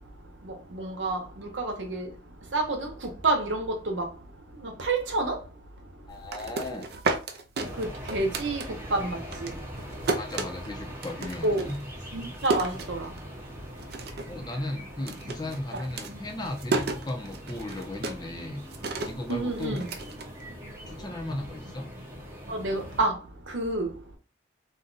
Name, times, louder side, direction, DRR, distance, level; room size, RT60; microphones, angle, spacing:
voice 1, 0.7-2.1 2.5-2.9 3.2-4.0 4.6-5.3 7.6-8.6 8.9-9.5 11.4-11.7 12.1-13.1 19.3-19.8 22.5-23.1 23.5-23.9, right 2 dB, 75° right, 0.9 m, -28 dB
voice 2, 6.1-6.9 10.2-11.8 14.3-18.6 19.0-19.9 20.8-21.9, left 1 dB, 20° left, 0.6 m, -36 dB
sound 1, 6.1-9.0 9.3-13.5 13.8-14.4 14.6-20.9, right 3 dB, 55° right, 0.5 m, -33 dB
sound 2, 7.6-23.1, equal, 15° right, 0.7 m, -42 dB
2.6 x 2.3 x 3.8 m
head